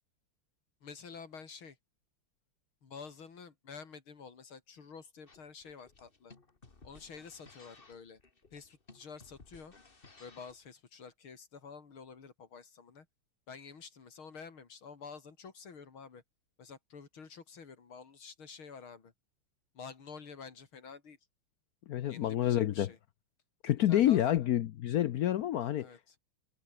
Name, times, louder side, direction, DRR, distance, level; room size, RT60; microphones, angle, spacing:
voice 1, 0.8-1.8 2.8-6.3 6.8-8.2 8.5-9.7 10.2-13.1 13.5-16.2 16.6-19.1 19.7-21.2 22.1-23.0 23.9-24.2 25.8-26.2, left 5 dB, 70° left, 3.7 m, -49 dB
sound 1, 5.3-10.7, left 3 dB, 25° left, 2.1 m, -58 dB
voice 2, 21.9-22.9 23.6-25.9, left 12 dB, 85° left, 0.8 m, -28 dB
omnidirectional pair, 2.4 m